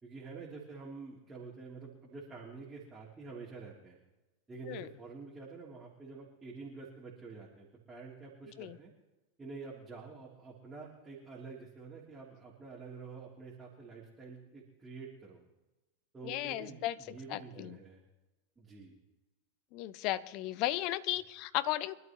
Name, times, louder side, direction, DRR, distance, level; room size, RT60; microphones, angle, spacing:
voice 1, 0.0-4.0 4.5-8.9 9.4-15.4 16.1-18.0 18.6-19.0, right 4 dB, 15° right, -4 dB, 3.3 m, -48 dB
voice 2, 16.2-17.8 19.7-22.0, left 15 dB, 45° left, 14 dB, 0.8 m, -35 dB
25.0 x 12.5 x 3.1 m, 1.1 s
figure-of-eight pair, 90°, 0 cm